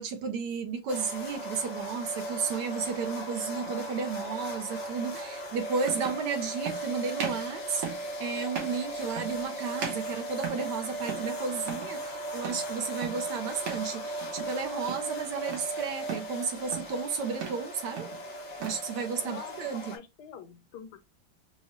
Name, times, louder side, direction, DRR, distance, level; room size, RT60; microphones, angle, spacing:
voice 1, 0.0-18.1 18.6-19.9, right 5 dB, 70° right, 1.2 m, -33 dB
sound 1, 0.9-20.0, right 1 dB, 85° left, 0.3 m, -37 dB
sound 2, 3.6-3.8 5.1-5.2 5.8-6.3 6.6-6.8 7.1-7.5 7.8-8.1 8.5-8.8 9.2-9.5 9.8-10.7 11.1-11.3 11.6-11.9 12.4-12.7 13.0-13.3 13.6-13.9 14.2-14.6 14.9-15.7 16.1-16.3 16.7-17.0 17.3-17.7 18.0-18.8, right 7 dB, 85° right, 1.9 m, -38 dB
voice 2, 19.2-21.0, left 8 dB, 65° left, 1.1 m, -46 dB
4.6 x 2.2 x 2.9 m
omnidirectional pair, 2.2 m